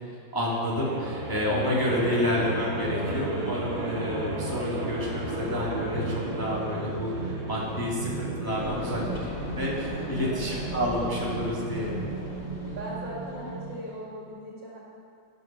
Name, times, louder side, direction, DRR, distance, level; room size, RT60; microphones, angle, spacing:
voice 1, 0.3-9.0 9.6-11.9, left 1 dB, 10° left, -6 dB, 2.0 m, -29 dB
sound 1, 0.7-13.9, right 2 dB, 90° right, 2.9 m, -34 dB
sound 2, 8.5-13.6, left 2 dB, 35° left, 1.9 m, -39 dB
voice 2, 8.6-9.1 10.0-10.7 12.7-14.8, equal, 60° right, -5 dB, 3.1 m, -39 dB
12.0 x 11.0 x 5.9 m, 2.4 s
omnidirectional pair, 2.2 m